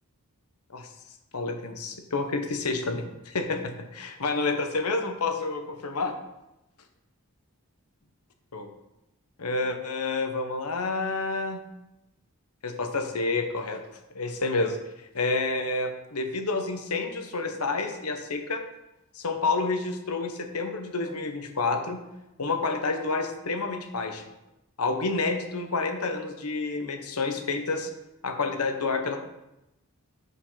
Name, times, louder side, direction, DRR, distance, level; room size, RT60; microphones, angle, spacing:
voice 1, 1.3-6.1 8.5-8.7 9.4-11.6 12.6-13.8 14.1-14.8 15.1-18.6 19.1-22.0 22.4-24.2 24.8-27.9 28.2-29.2, left 3 dB, 85° left, 6 dB, 1.0 m, -29 dB
6.7 x 5.2 x 5.6 m, 0.91 s
head